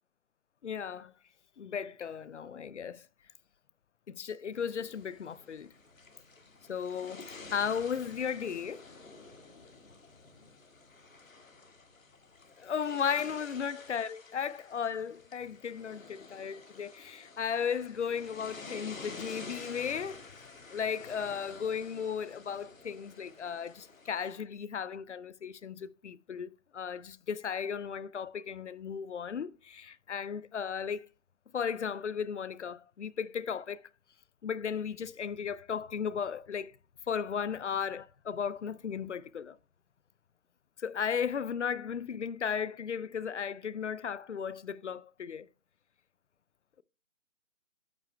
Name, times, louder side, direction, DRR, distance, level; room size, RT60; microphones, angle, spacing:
voice 1, 0.6-1.1 1.6-3.1 4.1-5.7 6.7-8.9 12.6-20.2 20.7-31.1 31.5-33.8 34.4-36.7 37.1-39.6 40.8-45.5, left 7 dB, 60° left, 0.5 m, -35 dB
sound 1, 4.5-24.4, left 3 dB, 85° left, 2.0 m, -50 dB
10.0 x 9.0 x 2.2 m
hypercardioid pair, 175°, 39 cm